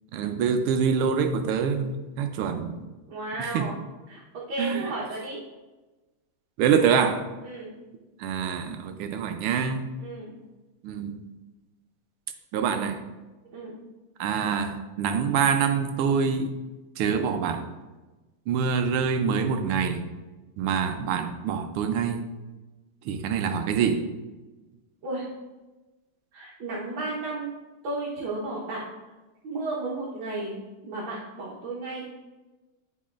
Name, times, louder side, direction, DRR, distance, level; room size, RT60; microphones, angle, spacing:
voice 1, 0.1-2.8 3.4-3.7 4.6-4.9 6.6-7.2 8.2-9.9 10.8-11.2 12.5-13.0 14.2-16.5 17.0-17.7 18.5-20.0 20.6-22.2 23.1-24.0, right 6 dB, 90° right, 7 dB, 1.6 m, -25 dB
voice 2, 3.1-3.8 4.1-5.4 7.4-7.7 10.0-10.3 13.5-13.8 25.0-25.3 26.3-27.6 27.8-28.8 29.4-32.1, right 2 dB, 65° right, -6 dB, 1.9 m, -33 dB
10.0 x 4.7 x 2.5 m, 1.2 s
omnidirectional pair, 2.4 m